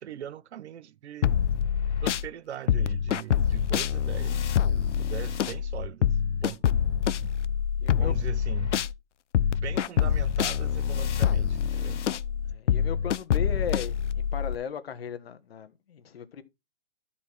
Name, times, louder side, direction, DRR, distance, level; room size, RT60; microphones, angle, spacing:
voice 1, 0.0-1.4 2.0-4.5 5.0-6.1 6.4-6.6 7.2-7.3 7.9-8.8 9.5-12.1, right 11 dB, 70° right, 0.6 m, -40 dB
sound 1, 1.2-2.3 2.7-8.9 9.3-14.6, left 9 dB, 90° left, 0.6 m, -26 dB
voice 2, 7.8-8.1 12.5-16.4, left 7 dB, 55° left, 1.3 m, -37 dB
13.0 x 4.4 x 4.6 m
hypercardioid pair, 170°, 35 cm